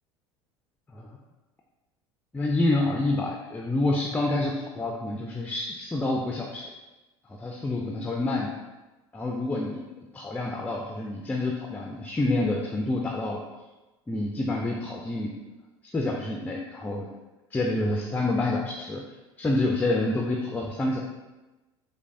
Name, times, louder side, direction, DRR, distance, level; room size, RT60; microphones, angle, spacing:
voice 1, 2.3-6.7 7.3-8.5 9.1-9.8 10.1-13.4 14.1-15.3 15.8-17.1 17.5-19.0 19.4-21.0, left 2 dB, 10° left, 0 dB, 0.4 m, -28 dB
6.0 x 2.1 x 2.5 m, 1.1 s
figure-of-eight pair, 70°, 15 cm